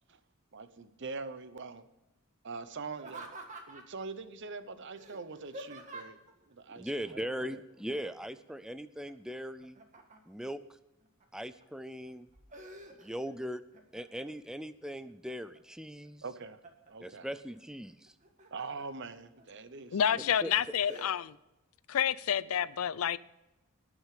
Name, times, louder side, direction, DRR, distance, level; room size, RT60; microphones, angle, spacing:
voice 1, 0.5-1.8 2.4-3.3 3.7-6.2 6.5-7.6 16.2-16.6 16.9-17.3 18.5-20.3, right 4 dB, 55° right, 0.9 m, -43 dB
Laughter, 2.9-4.0 4.9-6.3 8.0-8.5 8.8-10.4 11.0-11.6 12.1-13.3 13.7-14.3 14.8-15.6 16.0-16.9 18.1-18.9 19.4-19.5 20.0-20.3 20.9-21.1, right 2 dB, 35° right, 1.8 m, -49 dB
voice 2, 6.8-9.8 10.3-10.6 11.3-12.3 13.0-13.6 13.9-16.2 17.0-18.1 20.4-20.5, equal, 5° right, 0.4 m, -39 dB
voice 3, 19.9-21.3 21.9-23.2, left 9 dB, 75° left, 0.5 m, -29 dB
19.0 x 6.3 x 4.9 m
head